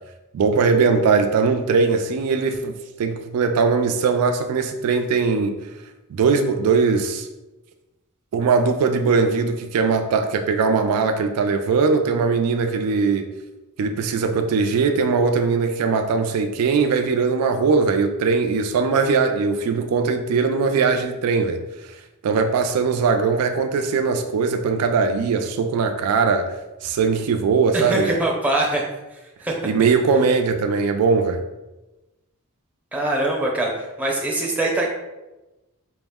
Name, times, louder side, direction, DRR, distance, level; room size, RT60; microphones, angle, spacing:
voice 1, 0.3-5.6 6.1-7.3 8.3-13.3 13.8-22.0 22.2-26.5 26.8-28.2 29.6-31.4, right 5 dB, 85° right, 6 dB, 0.3 m, -20 dB
voice 2, 27.9-28.8 29.4-29.5 32.9-33.7 34.0-34.9, right 2 dB, 5° right, -2 dB, 0.6 m, -22 dB
4.8 x 2.0 x 3.5 m, 1.0 s
head